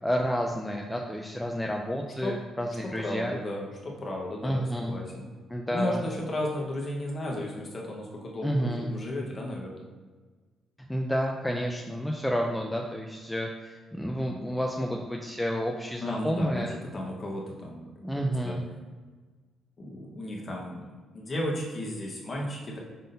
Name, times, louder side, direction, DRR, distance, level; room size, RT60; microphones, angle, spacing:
voice 1, 0.0-3.4 4.4-4.9 5.5-6.0 8.4-8.9 10.9-16.7 18.0-18.6, equal, 5° left, 0 dB, 0.5 m, -30 dB
voice 2, 3.0-5.2 5.7-9.9 16.0-16.6 16.9-18.6 19.8-20.9 21.1-22.8, left 1 dB, 40° left, -1 dB, 1.2 m, -34 dB
5.5 x 3.6 x 2.7 m, 1.4 s
cardioid pair, 90°, 0 cm